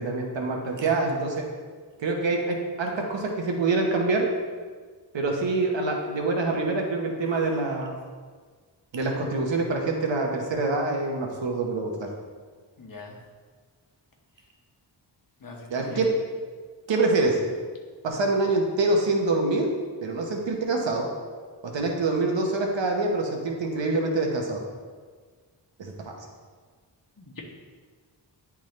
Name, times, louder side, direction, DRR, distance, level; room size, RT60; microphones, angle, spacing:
voice 1, 0.0-1.5 2.0-4.3 5.1-7.9 8.9-12.1 15.7-16.1 16.9-17.4 18.0-19.7 20.0-21.1 21.6-24.6 25.8-26.1, right 3 dB, 85° right, 1 dB, 1.0 m, -25 dB
voice 2, 12.8-13.2 15.4-16.0 27.2-27.4, left 3 dB, 50° left, -1 dB, 1.1 m, -41 dB
10.0 x 3.6 x 3.2 m, 1.5 s
wide cardioid pair, 115°, 43 cm